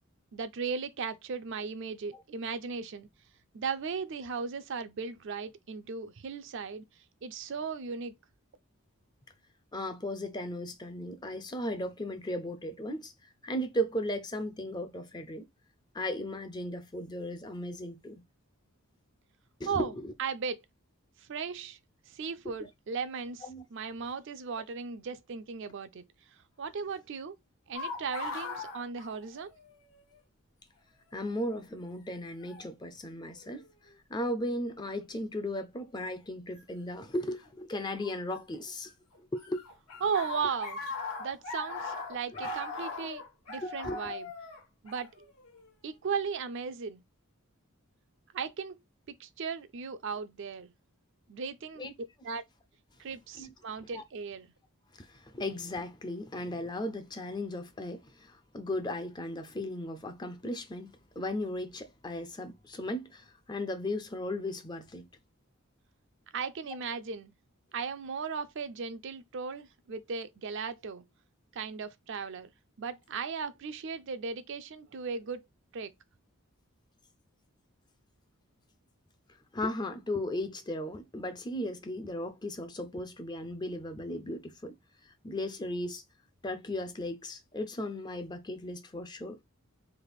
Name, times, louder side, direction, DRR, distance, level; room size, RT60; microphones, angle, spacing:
voice 1, 0.3-3.1 3.5-6.8 7.2-8.1 19.7-19.9 20.2-20.6 21.2-21.8 22.1-23.4 23.7-26.0 26.6-27.4 27.7-29.5 40.0-40.8 41.2-43.2 43.5-44.3 44.8-45.3 45.8-47.0 48.3-48.8 49.1-50.7 51.3-51.9 52.2-52.4 53.0-54.5 66.3-67.3 67.7-71.0 71.5-72.5 72.8-75.4 75.7-75.9, right 5 dB, 55° right, 0.4 m, -36 dB
voice 2, 9.7-15.5 15.9-18.1 19.6-20.1 22.4-22.6 23.4-23.6 31.1-33.7 34.1-38.9 39.2-39.6 42.3-42.4 43.6-44.1 51.8-51.9 53.4-53.5 53.9-54.0 55.0-65.1 79.5-84.8 85.2-86.0 86.4-89.4, left 1 dB, 20° left, 0.5 m, -36 dB
sound 1, 27.7-29.8 30.1-30.2 31.2-31.5 32.5-32.7 33.4-33.9 36.6-36.7 38.0-38.9 39.1-45.7, left 3 dB, 80° left, 1.4 m, -39 dB
3.4 x 2.5 x 4.0 m
head